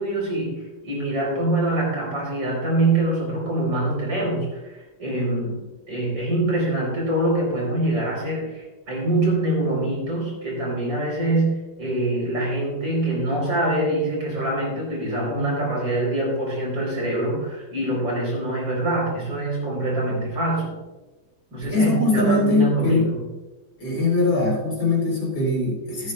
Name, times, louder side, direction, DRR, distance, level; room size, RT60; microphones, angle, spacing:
voice 1, 0.0-20.7 21.5-23.3, right 2 dB, 65° right, -3 dB, 5.0 m, -24 dB
voice 2, 21.5-23.0 23.8-26.1, left 2 dB, 45° left, -5 dB, 4.5 m, -21 dB
15.5 x 9.8 x 2.4 m, 1.1 s
omnidirectional pair, 2.2 m